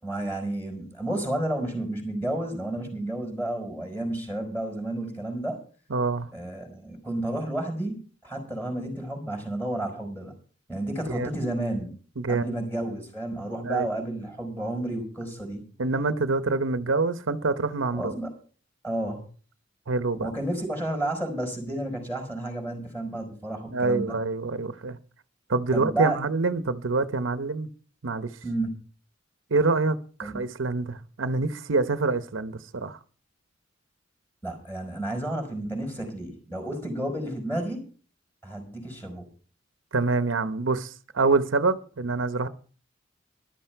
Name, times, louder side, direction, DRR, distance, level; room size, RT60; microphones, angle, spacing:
voice 1, 0.0-5.6 6.3-10.3 10.7-11.9 12.3-15.6 17.9-18.3 18.8-19.3 20.2-24.2 25.7-26.2 28.4-28.7 30.2-30.4 34.4-37.8 38.4-39.3, right 1 dB, 10° left, 5.1 m, -31 dB
voice 2, 5.9-6.3 11.1-11.3 12.2-12.5 13.6-13.9 15.8-18.1 19.9-20.3 23.7-25.0 25.5-27.7 28.0-28.3 29.5-33.0 39.9-42.5, right 3 dB, 90° right, 0.8 m, -26 dB
13.5 x 12.0 x 4.5 m
head